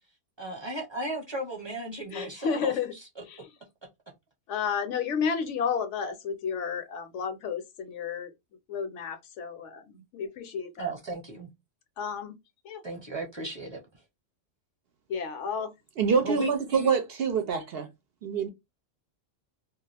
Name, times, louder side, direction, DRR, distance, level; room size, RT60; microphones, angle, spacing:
voice 1, 0.4-3.2 10.8-11.5 12.8-13.8 16.2-16.5, right 2 dB, 25° right, 0.8 m, -35 dB
voice 2, 2.1-2.9 3.3-3.4 4.5-8.3 8.7-10.9 12.0-12.4 12.6-12.8 15.1-15.7, left 6 dB, 75° left, 1.0 m, -32 dB
voice 3, 16.0-17.9 18.2-18.5, right 6 dB, 65° right, 0.7 m, -26 dB
2.3 x 2.3 x 3.3 m
omnidirectional pair, 1.3 m